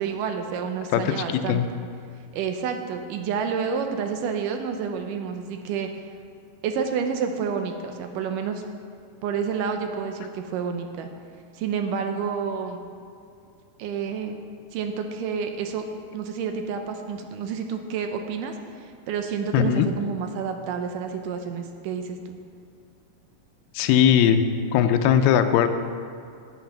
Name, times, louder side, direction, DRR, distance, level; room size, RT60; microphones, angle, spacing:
voice 1, 0.0-1.6 2.3-5.9 6.6-8.6 9.2-11.1 11.5-12.8 13.8-14.4 14.7-15.8 16.1-22.4, right 6 dB, 80° right, 5 dB, 1.9 m, -29 dB
voice 2, 0.9-1.7 19.5-19.9 23.8-24.5 24.7-25.7, left 9 dB, 85° left, 7 dB, 2.4 m, -19 dB
9.3 x 9.1 x 5.8 m, 2.4 s
omnidirectional pair, 4.5 m